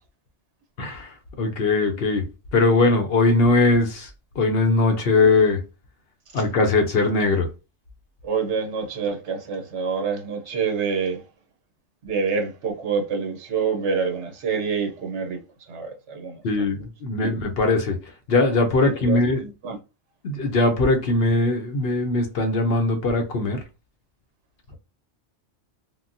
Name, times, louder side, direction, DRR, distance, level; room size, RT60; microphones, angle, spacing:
voice 1, 0.8-2.3 2.5-4.1 4.4-5.6 6.3-7.5 16.4-18.0 18.3-19.4 20.2-23.6, left 3 dB, 60° left, 0.8 m, -20 dB
voice 2, 8.2-11.2 12.0-15.4 15.7-16.4 17.2-17.3 19.0-19.8, right 5 dB, 75° right, 1.1 m, -27 dB
3.7 x 2.1 x 2.5 m
omnidirectional pair, 1.2 m